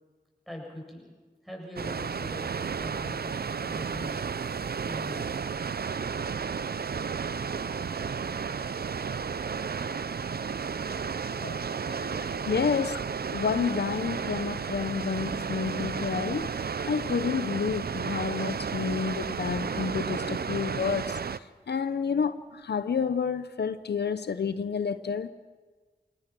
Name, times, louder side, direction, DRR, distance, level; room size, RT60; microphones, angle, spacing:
voice 1, 0.5-1.1 1.4-4.3 4.8-5.4, left 1 dB, ahead, 8.0 m, -42 dB
Water, 1.8-21.4, right 6 dB, 65° right, 0.6 m, -33 dB
sound 1, 7.0-15.3, left 2 dB, 65° left, 6.0 m, -54 dB
voice 2, 11.4-11.7 12.0-13.0 13.3-25.3, left 6 dB, 85° left, 0.7 m, -30 dB
26.5 x 19.0 x 6.1 m
cardioid pair, 45°, 17 cm